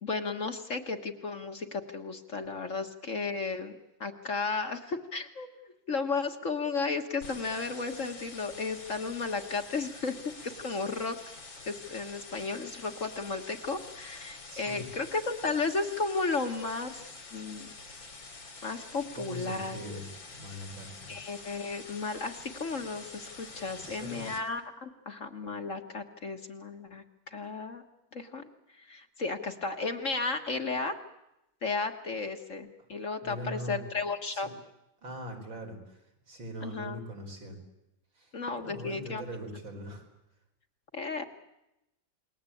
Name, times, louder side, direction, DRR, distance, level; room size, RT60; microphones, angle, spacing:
voice 1, 0.0-5.5 5.9-10.1 10.4-11.2 11.6-17.7 18.6-19.8 21.1-27.8 28.1-28.5 28.8-31.0 31.6-34.5 36.6-37.0 38.3-39.2 40.9-41.2, left 4 dB, 45° left, 6 dB, 1.7 m, -34 dB
sound 1, 7.2-24.4, left 3 dB, 80° left, 4.5 m, -47 dB
voice 2, 14.5-14.9 19.1-21.3 23.8-24.2 33.2-33.8 34.2-34.5 35.0-37.6 38.2-38.3 38.6-40.1, equal, 80° right, 2 dB, 5.5 m, -41 dB
28.5 x 21.0 x 8.5 m, 0.90 s
omnidirectional pair, 2.1 m